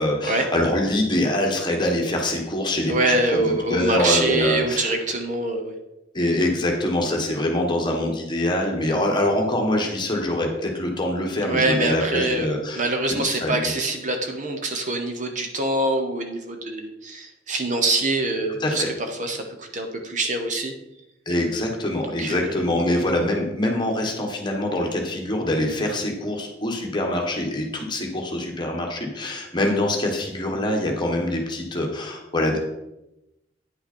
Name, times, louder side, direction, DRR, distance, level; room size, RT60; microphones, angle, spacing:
voice 1, 0.0-3.2 3.4-4.9 6.1-13.7 18.5-18.9 21.2-32.6, left 1 dB, 25° left, 1 dB, 1.4 m, -24 dB
voice 2, 2.9-5.7 11.4-12.5 12.8-18.8 19.2-20.7 22.0-22.6, right 2 dB, 45° right, 4 dB, 1.0 m, -24 dB
9.5 x 5.7 x 4.4 m, 0.92 s
head